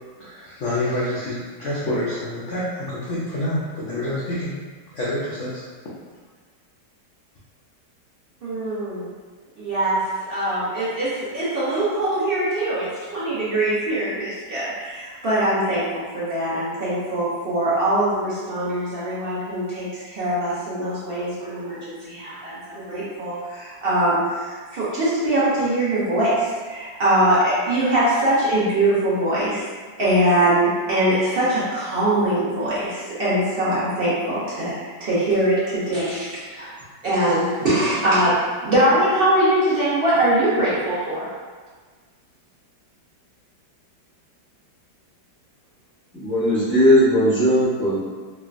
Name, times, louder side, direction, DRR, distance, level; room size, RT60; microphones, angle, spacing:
voice 1, 0.2-4.5 4.9-5.6, left 1 dB, 80° left, -7 dB, 0.6 m, -27 dB
voice 2, 8.4-9.1 9.6-10.0 10.3-22.5 22.9-29.6 30.0-34.7 35.0-36.7 37.0-38.3 38.6-41.3, right 1 dB, 60° right, -9 dB, 0.5 m, -22 dB
voice 3, 46.1-48.0, equal, 15° left, -13 dB, 0.4 m, -18 dB
3.2 x 2.1 x 2.4 m, 1.5 s
omnidirectional pair, 1.8 m